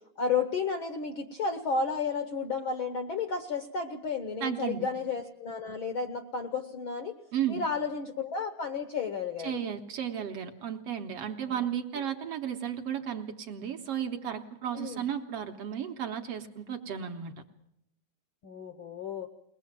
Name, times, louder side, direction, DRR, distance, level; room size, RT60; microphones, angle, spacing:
voice 1, 0.2-7.1 7.5-9.6 11.5-11.7 14.7-15.0 18.4-19.3, left 5 dB, 65° left, 8 dB, 1.3 m, -32 dB
voice 2, 4.4-4.9 7.3-7.6 9.4-17.3, right 9 dB, 65° right, 5 dB, 1.7 m, -34 dB
22.0 x 19.5 x 7.4 m, 0.77 s
omnidirectional pair, 3.5 m